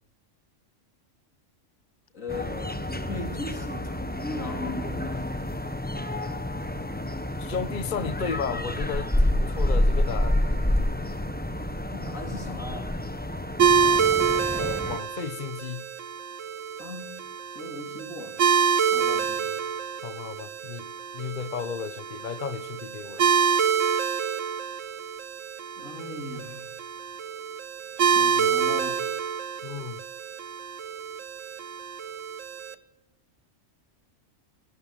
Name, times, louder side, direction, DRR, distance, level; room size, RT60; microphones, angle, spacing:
voice 1, 2.1-5.4 11.9-13.0 16.8-17.2 17.5-18.4 18.9-19.5 25.8-26.7 28.0-29.0, left 2 dB, 90° left, 4 dB, 4.1 m, -38 dB
sound 1, 2.3-15.0, left 1 dB, 10° left, 1.1 m, -28 dB
voice 2, 7.4-10.5 14.6-15.8 20.0-20.9 21.1-23.3 29.6-30.0, left 6 dB, 40° left, 12 dB, 1.1 m, -34 dB
sound 2, 13.6-32.7, right 6 dB, 75° right, 1.5 m, -27 dB
23.0 x 18.0 x 9.0 m, 0.82 s
omnidirectional pair, 1.3 m